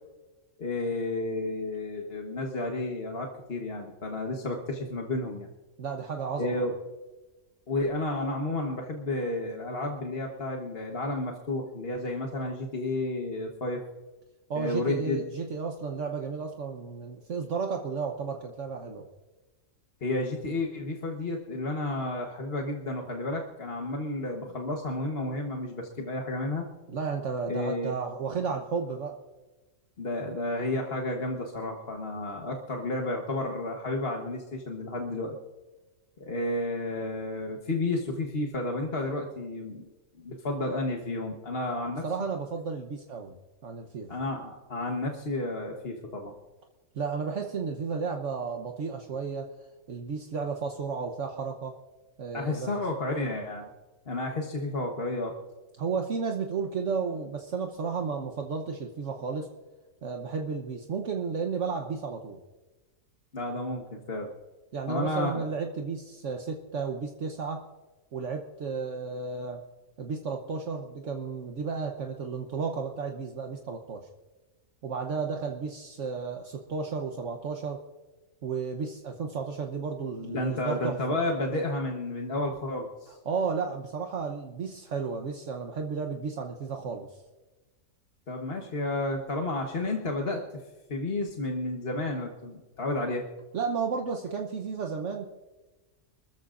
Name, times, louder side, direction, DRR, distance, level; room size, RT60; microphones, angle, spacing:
voice 1, 0.6-5.5 6.4-6.7 7.7-13.8 14.5-15.2 20.0-26.7 27.5-27.9 30.0-35.4 36.2-39.9 40.2-42.3 44.1-46.3 52.3-53.7 54.1-55.3 63.3-64.3 64.9-65.4 80.2-83.2 88.3-90.4 90.9-93.3, left 2 dB, 45° left, 1 dB, 1.5 m, -31 dB
voice 2, 5.8-6.7 14.5-19.1 26.9-29.2 41.9-44.1 46.9-51.8 52.2-52.7 55.8-59.5 60.0-62.4 64.7-67.6 68.1-69.6 70.0-74.1 74.8-77.8 78.4-81.2 83.1-87.2 93.5-95.3, right 5 dB, 65° right, 3 dB, 1.3 m, -33 dB
27.5 x 14.0 x 2.6 m, 1.2 s
omnidirectional pair, 1.4 m